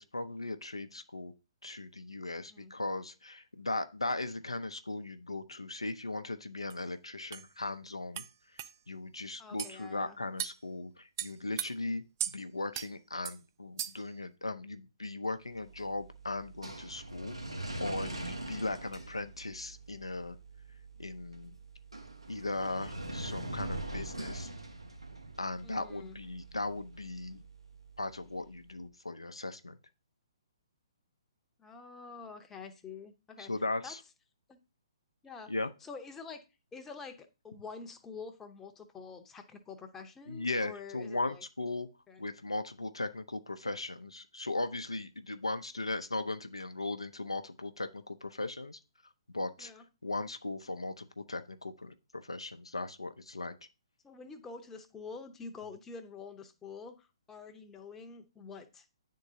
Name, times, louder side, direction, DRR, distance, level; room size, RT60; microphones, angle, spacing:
voice 1, 0.0-1.3 1.6-8.2 8.5-17.4 17.8-20.4 21.0-21.5 22.3-24.5 25.4-27.4 28.0-29.8 33.4-34.0 35.5-35.7 40.3-41.9 42.2-48.8 49.3-49.7 50.0-53.5, left 2 dB, 85° left, 9 dB, 0.5 m, -38 dB
sound 1, 6.7-6.8 7.3-7.5 8.2-8.3 8.6-8.7 9.6-9.8 10.4-10.6 11.2-11.7 12.2-12.4 12.7-12.9 13.3-13.4 13.8-14.1, right 10 dB, 40° right, 0.4 m, -37 dB
voice 2, 9.4-10.2 25.6-26.2 31.6-33.5 33.8-33.9 34.5-34.6 35.2-35.5 35.8-36.4 36.7-41.4 42.1-42.2 49.6-49.8 54.0-58.8, left 5 dB, 10° left, 6 dB, 0.7 m, -47 dB
sound 2, 15.5-28.6, right 1 dB, 90° right, 1.1 m, -43 dB
9.6 x 3.7 x 2.7 m, 0.30 s
figure-of-eight pair, 125°, 3 cm